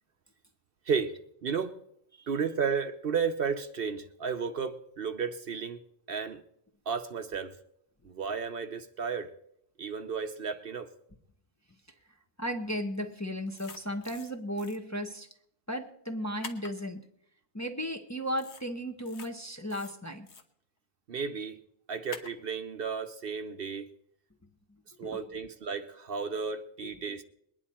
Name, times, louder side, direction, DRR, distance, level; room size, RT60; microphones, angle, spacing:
voice 1, 1.4-1.8 2.3-5.8 6.1-6.4 6.9-7.6 8.0-9.3 9.8-10.9 21.1-21.6 21.9-23.9 25.0-27.2, right 6 dB, 55° right, 0.9 m, -33 dB
voice 2, 12.4-15.3 15.7-17.1 17.5-20.3 25.0-25.4 26.8-26.9, equal, 15° left, 0.8 m, -35 dB
sound 1, 13.5-14.3 14.6-14.8 16.4-16.7 18.4-18.6 19.0-19.3 19.7-20.4 22.1-22.3, left 4 dB, 70° left, 1.5 m, -45 dB
21.5 x 10.0 x 4.3 m
omnidirectional pair, 1.2 m